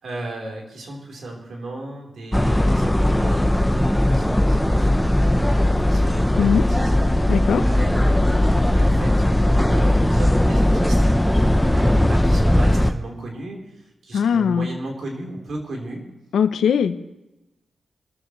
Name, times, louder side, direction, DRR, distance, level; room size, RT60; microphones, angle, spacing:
voice 1, 0.0-5.2 5.9-7.3 7.6-11.1 11.5-16.0, right 2 dB, 75° right, 0 dB, 4.1 m, -35 dB
sound 1, 2.3-12.9, left 1 dB, 5° left, 0.9 m, -18 dB
voice 2, 7.3-7.6 14.1-14.7 16.3-17.0, left 7 dB, 90° left, 11 dB, 0.8 m, -19 dB
24.5 x 14.0 x 3.2 m, 0.97 s
cardioid pair, 50°, 0 cm